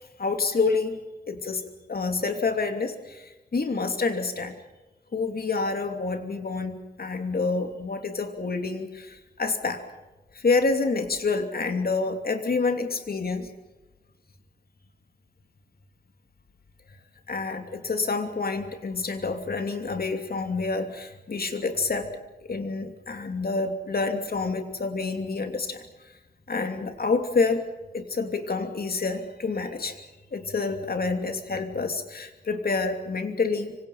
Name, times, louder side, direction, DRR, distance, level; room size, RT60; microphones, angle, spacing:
voice 1, 0.2-1.0 1.3-4.5 5.1-9.8 10.3-13.5 17.3-22.1 22.5-25.8 26.5-27.6 27.9-30.0 30.3-33.8, left 4 dB, 65° left, 6 dB, 3.0 m, -28 dB
26.0 x 25.5 x 5.8 m, 1.1 s
wide cardioid pair, 100°, 17 cm